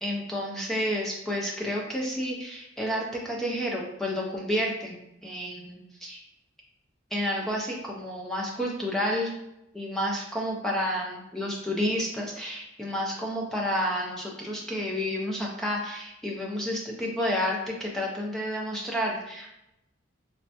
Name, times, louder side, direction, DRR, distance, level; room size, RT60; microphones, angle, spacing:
voice 1, 0.0-6.2 7.1-9.3 9.7-19.5, equal, ahead, -3 dB, 0.3 m, -30 dB
3.2 x 2.0 x 2.7 m, 0.85 s
head